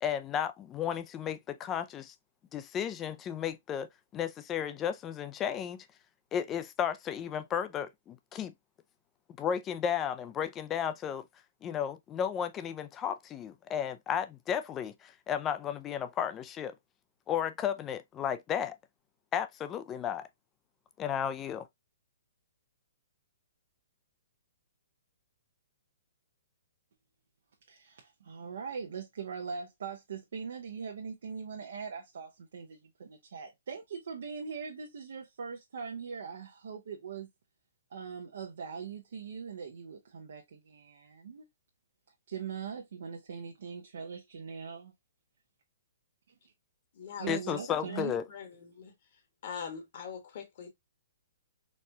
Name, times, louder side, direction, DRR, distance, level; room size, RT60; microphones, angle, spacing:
voice 1, 0.0-2.1 2.5-5.9 6.3-8.5 9.4-11.3 11.6-16.7 17.3-18.8 19.3-20.3 21.0-21.7 47.3-48.2, left 9 dB, 20° left, 0.4 m, -33 dB
voice 2, 27.7-37.3 37.9-41.5 42.3-44.9 47.2-48.2, right 6 dB, 70° right, 0.7 m, -41 dB
voice 3, 47.0-47.4 47.9-48.9 49.4-50.7, left 7 dB, 50° left, 1.2 m, -43 dB
4.1 x 2.3 x 2.7 m
hypercardioid pair, 145°, 0 cm